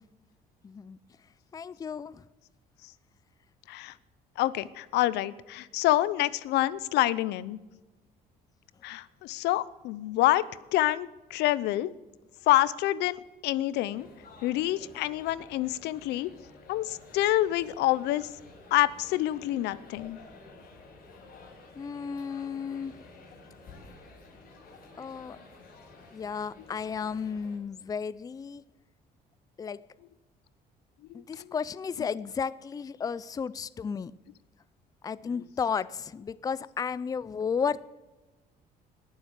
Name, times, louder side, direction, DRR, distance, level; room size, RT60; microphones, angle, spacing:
voice 1, 0.6-1.0 1.5-2.2 21.8-22.9 25.0-25.4 26.1-28.7 29.6-29.9 31.1-34.1 35.0-37.8, left 6 dB, 20° left, 0.4 m, -33 dB
voice 2, 4.4-7.6 8.8-11.9 12.5-14.1 14.4-16.3 16.7-18.3 18.7-20.2 31.1-31.5, left 15 dB, 85° left, 0.7 m, -27 dB
sound 1, 13.9-27.6, left 3 dB, 60° left, 6.2 m, -52 dB
20.0 x 7.4 x 8.2 m
cardioid pair, 110°, 17 cm